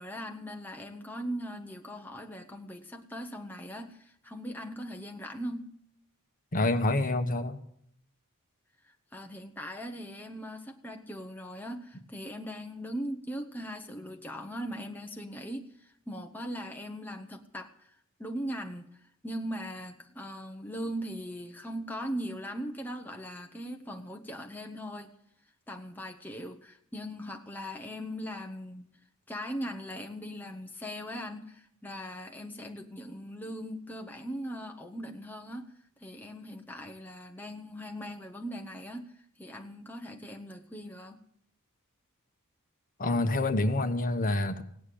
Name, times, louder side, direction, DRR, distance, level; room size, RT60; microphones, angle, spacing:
voice 1, 0.0-5.7 8.8-17.9 18.2-18.9 19.2-25.1 25.7-28.9 29.3-35.7 36.0-39.1 39.4-41.2, equal, 10° left, 3 dB, 0.9 m, -39 dB
voice 2, 6.5-7.6 43.0-44.6, left 2 dB, 40° left, 8 dB, 1.1 m, -27 dB
17.0 x 9.5 x 8.5 m, 0.68 s
head